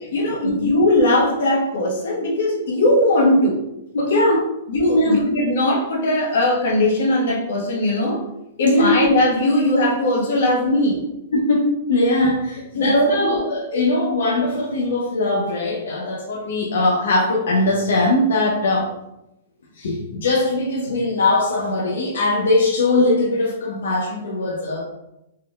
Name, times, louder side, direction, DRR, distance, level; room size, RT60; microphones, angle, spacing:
voice 1, 0.1-3.6 4.0-4.3 4.7-8.2 8.6-11.0 12.8-13.4, left 1 dB, 55° left, -4 dB, 1.5 m, -19 dB
voice 2, 3.9-4.4 4.9-5.2 8.6-9.0 11.3-18.9 19.8-24.8, left 2 dB, 85° left, -3 dB, 0.9 m, -20 dB
4.3 x 3.9 x 2.5 m, 0.88 s
hypercardioid pair, 175°, 0 cm